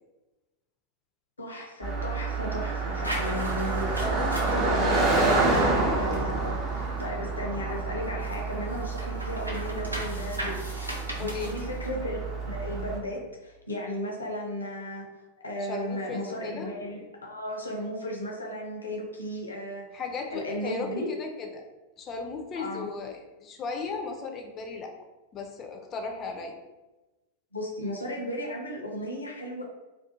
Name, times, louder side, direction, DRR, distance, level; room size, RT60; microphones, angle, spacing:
voice 1, 1.4-4.0 4.3-10.6 10.9-19.9 20.3-21.1 22.5-22.9 27.5-29.6, equal, 75° left, 0 dB, 0.6 m, -35 dB
Car passing by, 1.8-13.0, right 3 dB, 30° right, 0.6 m, -28 dB
sound 1, 3.0-7.2 7.6-11.9, equal, 85° right, 0.5 m, -39 dB
voice 2, 4.0-4.7 11.2-11.5 15.7-16.7 19.9-20.9 21.2-21.7 22.0-24.9 25.3-26.5, left 4 dB, 30° left, 3 dB, 0.4 m, -36 dB
2.5 x 2.3 x 2.6 m, 1.1 s
figure-of-eight pair, 90°, 0 cm